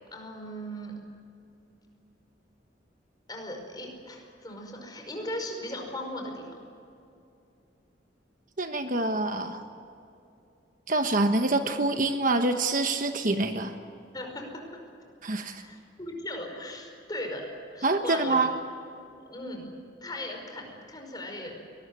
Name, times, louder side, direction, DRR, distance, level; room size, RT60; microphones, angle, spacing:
voice 1, 0.1-0.9 3.3-6.6 14.1-14.6 15.6-17.5 17.7-18.5 19.3-19.7 20.0-21.6, left 1 dB, 20° left, 2 dB, 5.3 m, -38 dB
voice 2, 8.6-9.6 10.9-13.7 15.2-15.6 17.8-18.5, right 2 dB, 45° right, 7 dB, 1.2 m, -26 dB
23.0 x 20.0 x 9.8 m, 2.6 s
head